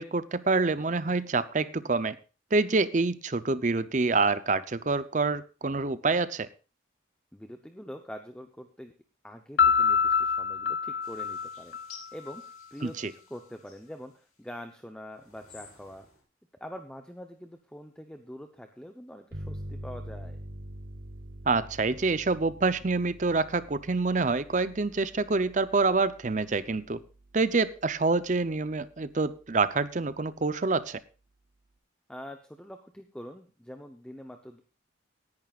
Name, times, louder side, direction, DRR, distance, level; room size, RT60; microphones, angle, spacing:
voice 1, 0.0-2.2 2.5-6.5 12.8-13.1 21.5-27.0 27.3-31.0, right 3 dB, 40° right, 15 dB, 0.6 m, -27 dB
voice 2, 7.3-8.9 9.2-11.8 12.1-16.1 16.6-20.4 32.1-34.6, equal, 5° left, 5 dB, 0.7 m, -44 dB
Piano, 9.6-12.4, left 6 dB, 65° left, 0.7 m, -25 dB
sound 1, 11.0-14.5 15.1-16.2, left 6 dB, 45° left, 5.4 m, -54 dB
sound 2, 19.3-28.6, right 1 dB, 60° right, 1.3 m, -45 dB
18.0 x 10.5 x 2.4 m, 0.34 s
head